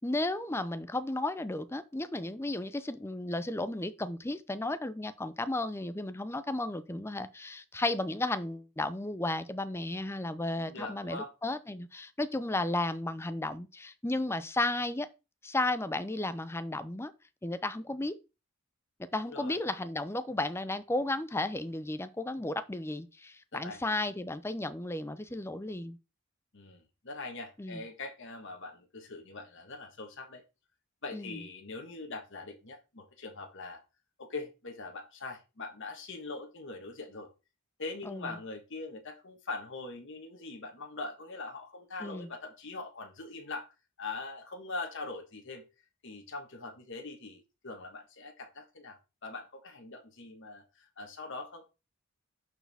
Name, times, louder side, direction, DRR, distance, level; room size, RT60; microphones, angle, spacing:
voice 1, 0.0-15.1 15.4-17.1 17.4-18.2 19.1-26.0 27.6-27.8 31.1-31.4 38.0-38.4 42.0-42.3, left 2 dB, 10° left, 0.5 m, -34 dB
voice 2, 10.6-11.3 19.3-19.6 23.5-23.8 26.5-30.4 31.0-33.8 34.2-37.3 37.8-43.7 44.0-45.6 46.0-51.6, left 3 dB, 60° left, 1.4 m, -42 dB
11.5 x 4.7 x 3.5 m
head